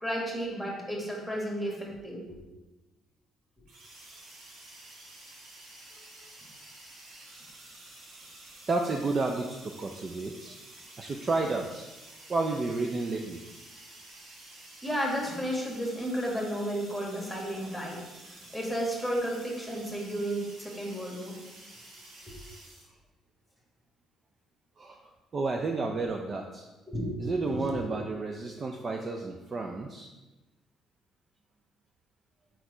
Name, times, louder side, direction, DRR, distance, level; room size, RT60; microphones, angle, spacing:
voice 1, 0.0-2.4 14.8-18.0 18.5-21.4 22.3-22.4 26.9-28.0, equal, ahead, -2 dB, 1.6 m, -33 dB
sound 1, 3.7-22.9, right 1 dB, 90° right, 1.7 m, -50 dB
voice 2, 8.7-10.6 11.0-11.9 12.3-13.4 24.8-25.0 25.3-26.6 27.2-30.1, right 3 dB, 30° right, 3 dB, 0.4 m, -31 dB
4.6 x 4.4 x 4.8 m, 1.1 s
cardioid pair, 125°, 0 cm